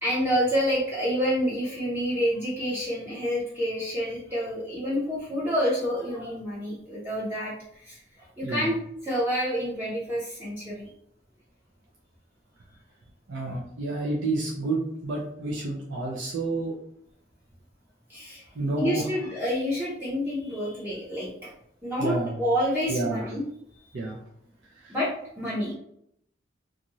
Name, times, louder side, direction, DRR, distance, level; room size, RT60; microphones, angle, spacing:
voice 1, 0.0-10.9 18.1-18.5 18.8-21.5 21.8-23.4 23.7-23.8 24.9-25.1 25.4-25.7, equal, 10° right, -7 dB, 0.6 m, -28 dB
voice 2, 13.3-16.7 18.6-19.0 22.0-22.4 22.9-23.3 23.9-24.2 24.8-24.9, right 2 dB, 75° right, -4 dB, 0.6 m, -29 dB
2.6 x 2.5 x 2.9 m, 0.72 s
head